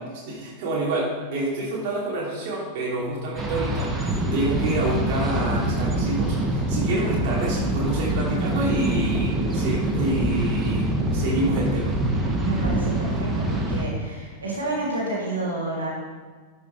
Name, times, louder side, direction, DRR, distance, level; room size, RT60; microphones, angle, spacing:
voice 1, 0.3-12.0, right 1 dB, 45° right, -5 dB, 3.1 m, -28 dB
sound 1, 3.4-13.8, right 1 dB, 15° right, 1.6 m, -25 dB
voice 2, 12.4-15.9, right 2 dB, 70° right, -5 dB, 2.7 m, -29 dB
11.5 x 6.4 x 4.8 m, 1.5 s
figure-of-eight pair, 90°, 0 cm